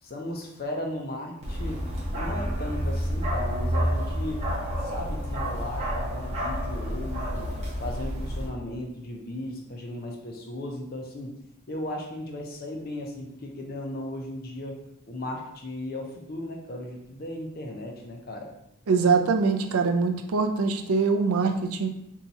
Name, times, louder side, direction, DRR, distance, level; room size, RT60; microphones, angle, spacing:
voice 1, 0.0-1.9 2.1-4.5 4.8-7.5 7.8-11.4 11.7-14.8 15.1-18.5, left 1 dB, 45° left, 1 dB, 0.5 m, -36 dB
Bark, 1.4-8.5, equal, 30° right, 0.7 m, -29 dB
voice 2, 18.9-21.9, right 4 dB, 75° right, 5 dB, 0.4 m, -23 dB
2.7 x 2.3 x 4.0 m, 0.79 s
head